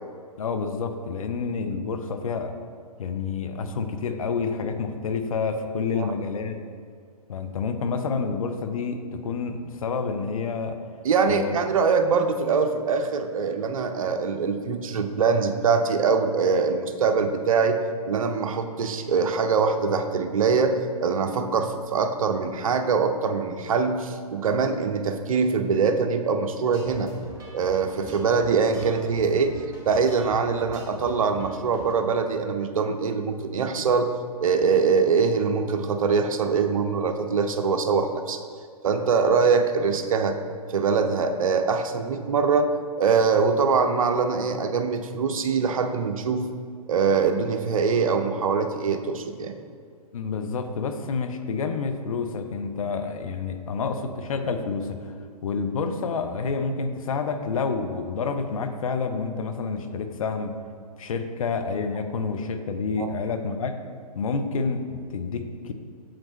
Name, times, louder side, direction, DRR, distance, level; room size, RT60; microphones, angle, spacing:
voice 1, 0.4-2.5 3.0-6.6 7.3-10.8 11.3-11.6 50.1-55.2 55.4-60.5 61.0-63.7 64.2-65.7, left 5 dB, 60° left, 7 dB, 0.6 m, -28 dB
voice 2, 11.0-17.8 18.1-27.1 27.5-34.1 34.4-38.4 38.8-40.4 40.7-42.7 43.0-46.5 46.9-49.5 63.0-63.1, right 5 dB, 60° right, 7 dB, 0.6 m, -23 dB
sound 1, 26.6-31.9, right 1 dB, 15° right, 1.1 m, -44 dB
7.2 x 5.0 x 3.0 m, 2.2 s
figure-of-eight pair, 115°, 19 cm